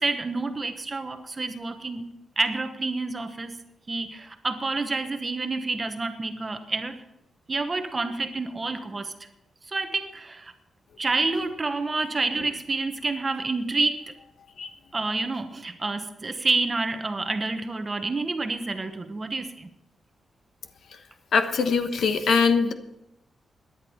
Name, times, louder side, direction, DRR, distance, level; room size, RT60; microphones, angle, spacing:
voice 1, 0.0-2.1 2.4-3.6 3.9-7.0 7.5-9.1 9.7-10.5 11.0-14.0 14.9-19.7, right 3 dB, 25° right, 7 dB, 1.0 m, -28 dB
voice 2, 21.3-22.7, left 5 dB, 60° left, 8 dB, 1.2 m, -22 dB
18.0 x 10.5 x 4.4 m, 0.88 s
wide cardioid pair, 155°, 0 cm